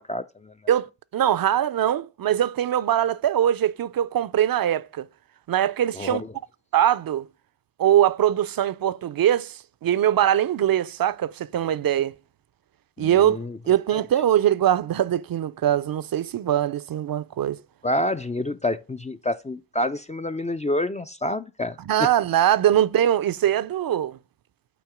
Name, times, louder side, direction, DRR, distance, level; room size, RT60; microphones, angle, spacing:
voice 1, 0.0-0.5 6.0-6.3 13.0-13.6 17.8-21.8, left 1 dB, 15° left, 0.4 m, -28 dB
voice 2, 0.7-5.1 5.5-6.2 6.7-7.3 7.8-12.1 13.0-17.6 21.8-24.2, right 11 dB, 55° right, 0.5 m, -22 dB
8.5 x 2.9 x 5.0 m
supercardioid pair, 45°, 42 cm